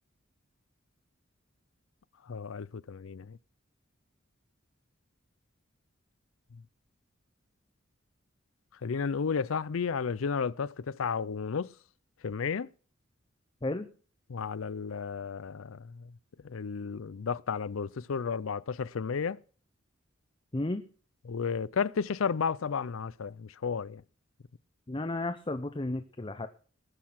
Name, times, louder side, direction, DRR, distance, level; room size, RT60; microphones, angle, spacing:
voice 1, 2.3-3.4 6.5-6.6 8.8-11.7 12.2-12.7 14.3-16.1 16.4-19.4 21.2-24.0, left 6 dB, 75° left, 0.5 m, -33 dB
voice 2, 24.9-26.5, left 2 dB, 25° left, 0.7 m, -33 dB
19.5 x 6.6 x 5.9 m
head